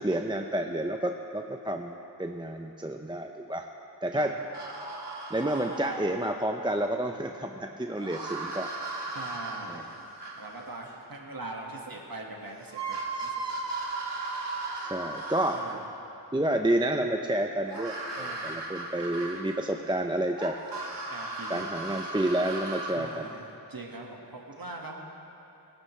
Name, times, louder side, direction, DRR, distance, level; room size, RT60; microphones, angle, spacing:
voice 1, 0.0-3.7 4.0-4.3 5.3-8.9 9.7-9.8 14.8-15.6 16.3-20.6 21.5-23.3, right 1 dB, 10° right, 4 dB, 0.5 m, -30 dB
sound 1, 4.5-6.4 8.0-11.0 12.3-12.4 12.7-15.9 17.7-19.8 20.4-23.0, right 3 dB, 75° right, 1.7 m, -37 dB
voice 2, 9.2-10.1 10.4-13.4 15.5-15.8 18.2-18.7 21.1-21.7 22.9-25.0, right 2 dB, 55° right, 0 dB, 1.7 m, -42 dB
21.5 x 11.0 x 3.2 m, 2.8 s
wide cardioid pair, 60°, 42 cm